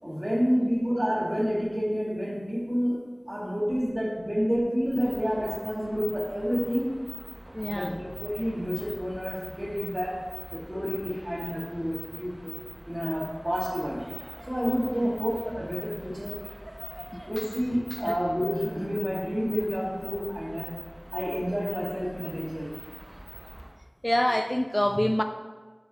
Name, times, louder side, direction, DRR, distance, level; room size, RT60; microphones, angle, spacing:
voice 1, 0.0-3.0 3.3-7.0 7.7-12.6 12.9-14.1 14.5-16.4 17.3-20.7 21.1-22.7, equal, 20° right, -6 dB, 2.2 m, -29 dB
mosquito sound, 4.9-23.8, right 1 dB, 40° right, 0.9 m, -43 dB
voice 2, 7.5-8.0 15.0-15.2 17.1-17.2 18.0-18.2 24.0-25.2, equal, 15° left, 7 dB, 0.3 m, -26 dB
9.4 x 4.7 x 3.1 m, 1.3 s
wide cardioid pair, 40°, 0 cm